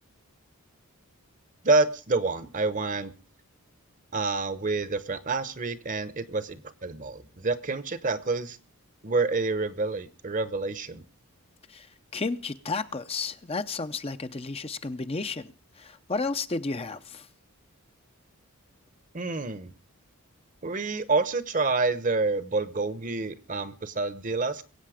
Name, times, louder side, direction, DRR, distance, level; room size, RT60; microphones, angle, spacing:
voice 1, 1.6-3.1 4.1-8.6 9.0-11.0 19.1-19.7 20.6-24.6, right 3 dB, 35° right, 1.0 m, -28 dB
voice 2, 12.1-17.3, left 3 dB, 25° left, 0.6 m, -32 dB
22.0 x 8.5 x 5.0 m
head